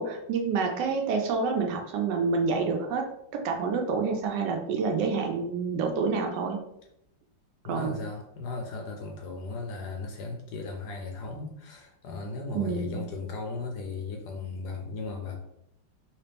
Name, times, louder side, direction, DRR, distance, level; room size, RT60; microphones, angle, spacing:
voice 1, 0.0-3.1 3.3-6.6 7.7-8.0 12.5-13.0, right 4 dB, 75° right, 2 dB, 1.1 m, -28 dB
voice 2, 7.6-15.4, left 3 dB, 75° left, 2 dB, 1.0 m, -36 dB
3.2 x 3.0 x 3.3 m, 0.79 s
omnidirectional pair, 2.1 m